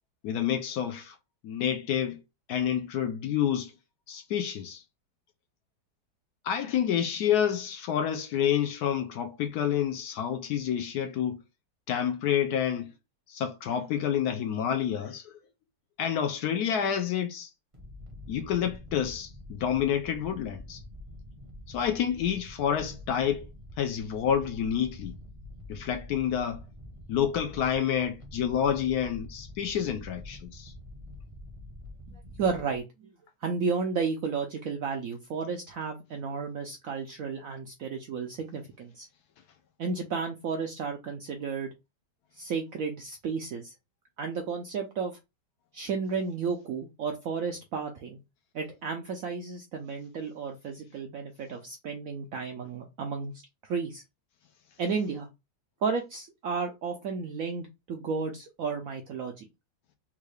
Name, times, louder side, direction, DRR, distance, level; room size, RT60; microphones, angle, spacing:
voice 1, 0.2-1.2 1.4-2.2 2.5-3.7 4.1-4.8 6.4-11.4 11.9-12.9 13.3-15.4 16.0-17.5 18.3-20.8 21.7-23.4 23.8-25.1 25.7-26.6 27.1-30.7, left 9 dB, 70° left, 0.9 m, -28 dB
sound 1, 17.7-32.8, left 1 dB, 30° right, 0.6 m, -46 dB
voice 2, 32.4-32.8 33.4-39.1 39.8-41.7 42.3-43.7 44.2-45.2 45.7-48.2 48.5-53.3 53.6-54.0 54.8-55.3 55.8-59.5, right 5 dB, 75° right, 0.8 m, -33 dB
3.6 x 2.3 x 3.3 m
omnidirectional pair, 2.0 m